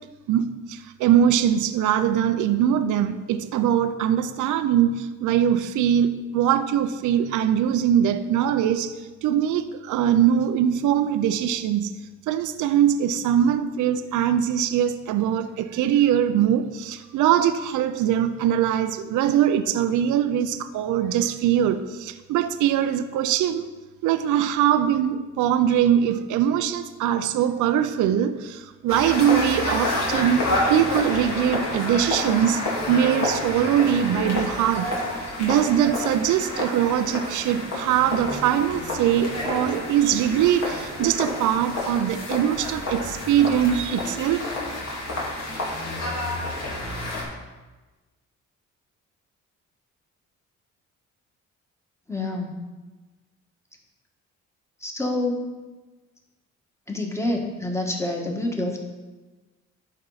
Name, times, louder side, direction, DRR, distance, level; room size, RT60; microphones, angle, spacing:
voice 1, 0.3-8.9 9.2-12.0 12.3-23.7 24.0-34.9 35.4-44.4, right 10 dB, 75° right, 11 dB, 0.5 m, -22 dB
sound 1, 28.9-47.2, left 2 dB, 60° left, 2.4 m, -29 dB
voice 2, 52.1-52.6 54.8-55.5 56.9-58.8, left 2 dB, 10° left, 1 dB, 1.4 m, -27 dB
11.5 x 4.5 x 4.0 m, 1.2 s
cardioid pair, 90°, 30 cm